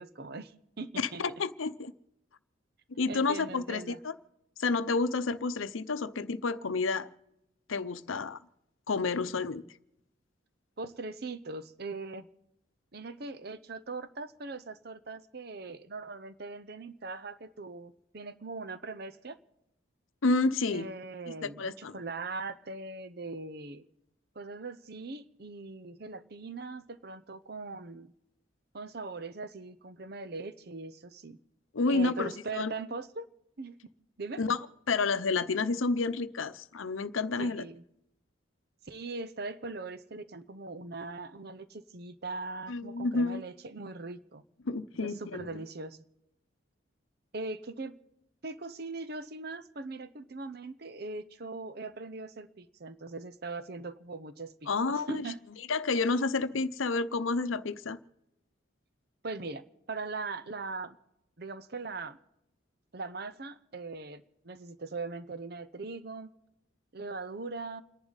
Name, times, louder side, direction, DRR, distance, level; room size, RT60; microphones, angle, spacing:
voice 1, 0.0-1.2 3.1-4.0 10.8-12.3 12.9-19.4 20.7-23.8 24.4-28.1 28.7-31.4 31.9-33.3 33.6-33.8 34.2-34.4 37.4-37.8 38.9-44.4 45.0-46.0 47.3-48.0 48.4-55.4 59.2-61.0 61.4-62.2 62.9-66.3 66.9-67.8, right 3 dB, 50° right, 13 dB, 0.7 m, -40 dB
voice 2, 1.0-1.9 2.9-4.1 4.6-7.1 7.7-8.4 8.9-9.6 20.2-20.9 21.4-21.9 31.7-32.7 34.4-34.6 34.9-37.6 42.7-43.4 44.7-45.6 54.7-55.3 55.7-58.0, left 3 dB, 85° left, 13 dB, 0.7 m, -30 dB
29.0 x 10.5 x 4.0 m, 0.85 s
head